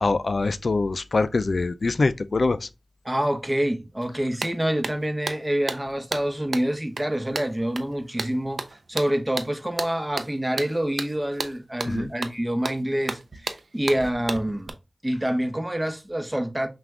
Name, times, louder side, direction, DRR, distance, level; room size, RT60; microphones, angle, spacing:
voice 1, 0.0-2.7 11.9-12.1, left 3 dB, 75° left, 0.4 m, -24 dB
voice 2, 3.0-14.7 15.0-16.7, right 1 dB, 20° right, 0.9 m, -27 dB
sound 1, 4.0-4.1 4.4-14.7, right 3 dB, 85° right, 0.5 m, -34 dB
5.8 x 2.4 x 3.5 m
cardioid pair, 45°, 0 cm